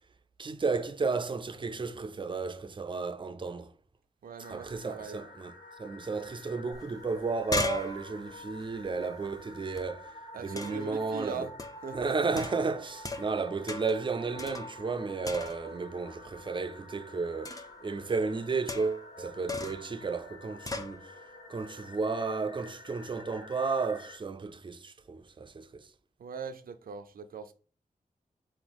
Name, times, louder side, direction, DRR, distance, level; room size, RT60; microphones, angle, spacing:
voice 1, 0.4-3.7 4.5-5.5 5.8-10.1 10.4-11.5 11.9-21.1 21.5-25.9, right 4 dB, 35° right, 0.4 m, -33 dB
voice 2, 4.2-5.2 10.3-11.5 11.8-12.2 26.2-27.5, right 5 dB, 90° right, 0.5 m, -40 dB
sound 1, 4.4-24.2, left 1 dB, 85° left, 0.9 m, -50 dB
sound 2, 6.7-6.8 7.1-9.8 10.6-10.9 11.6-11.9 12.4-13.4 13.7-14.0 14.4-15.0 15.2-15.8 17.4-17.8 18.7-19.1 19.5-19.9 20.7-21.0, left 2 dB, 25° left, 0.6 m, -37 dB
4.3 x 3.0 x 4.0 m
wide cardioid pair, 75°, 15 cm